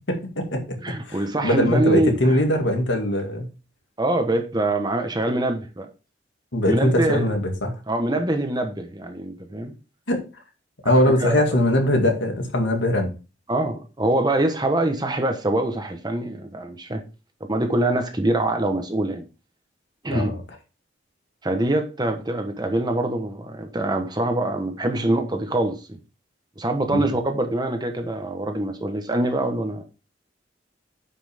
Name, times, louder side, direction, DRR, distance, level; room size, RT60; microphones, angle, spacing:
voice 1, 0.1-0.8 1.0-3.5 6.5-7.8 10.1-10.2 10.8-13.1 20.1-20.4 26.9-27.1, left 1 dB, 75° left, 2.2 m, -21 dB
voice 2, 0.8-2.4 4.0-5.9 6.7-7.2 7.9-9.7 10.8-10.9 11.2-11.3 13.5-17.0 17.5-19.3 20.0-20.3 21.4-26.0 26.6-29.8, right 1 dB, 25° right, 1.1 m, -24 dB
9.8 x 5.8 x 3.5 m
head